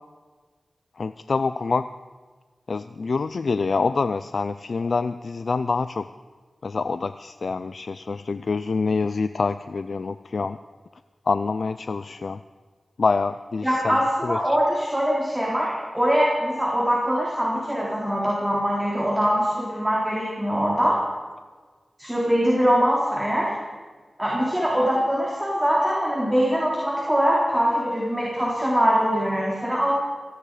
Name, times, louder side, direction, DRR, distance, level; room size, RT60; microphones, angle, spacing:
voice 1, 1.0-1.9 2.7-6.1 6.6-10.6 11.3-12.4 13.0-14.0 14.2-14.6, left 4 dB, 70° left, 12 dB, 0.4 m, -26 dB
voice 2, 13.6-21.0 22.0-23.5 24.2-29.9, equal, 10° right, -4 dB, 3.9 m, -22 dB
17.5 x 15.5 x 4.9 m, 1.4 s
cardioid pair, 55°, 0 cm